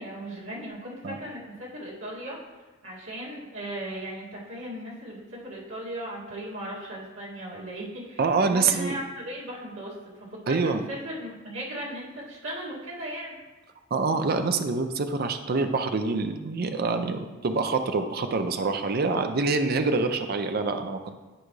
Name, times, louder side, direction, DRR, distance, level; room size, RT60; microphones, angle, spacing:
voice 1, 0.0-2.4 2.8-10.6 10.9-13.4, right 1 dB, 90° right, -7 dB, 2.3 m, -37 dB
voice 2, 8.2-9.0 10.5-10.8 13.9-21.1, right 4 dB, 50° right, 7 dB, 0.5 m, -26 dB
10.0 x 4.8 x 3.2 m, 1.2 s
head